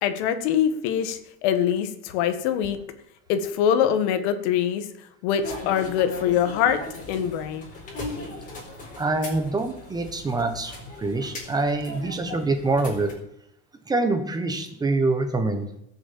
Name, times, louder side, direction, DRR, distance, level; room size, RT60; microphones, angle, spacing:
voice 1, 0.0-2.8 3.3-4.8 5.2-6.8 7.1-7.7, left 9 dB, 85° left, 10 dB, 1.7 m, -23 dB
sound 1, 5.4-13.1, left 2 dB, 25° left, 4.3 m, -38 dB
voice 2, 9.0-13.1 13.9-15.7, right 3 dB, 10° right, 7 dB, 1.2 m, -25 dB
17.0 x 6.9 x 7.5 m, 0.79 s
cardioid pair, 175°, 33 cm